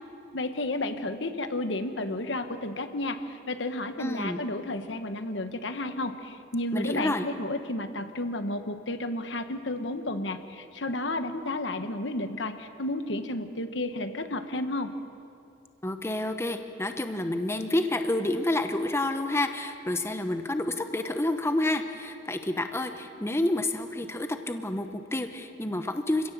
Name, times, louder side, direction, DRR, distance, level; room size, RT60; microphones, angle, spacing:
voice 1, 0.3-14.9, left 2 dB, 75° left, 8 dB, 1.3 m, -32 dB
voice 2, 4.0-4.4 6.7-7.3 15.8-26.3, left 1 dB, 15° left, 7 dB, 0.9 m, -29 dB
27.0 x 17.0 x 7.4 m, 2.6 s
head